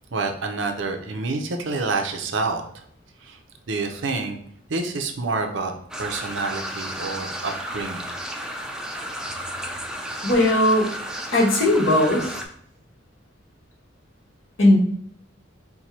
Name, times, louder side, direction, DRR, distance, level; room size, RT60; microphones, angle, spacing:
voice 1, 0.1-2.8 3.2-3.4 3.7-4.4 4.7-5.7 6.0-8.1, right 3 dB, 65° right, 4 dB, 0.6 m, -28 dB
sound 1, 5.9-12.4, equal, 5° right, 0.4 m, -33 dB
voice 2, 10.2-10.9 11.3-12.3 14.6-14.8, left 1 dB, 80° left, -2 dB, 1.4 m, -18 dB
4.5 x 2.2 x 4.1 m, 0.65 s
head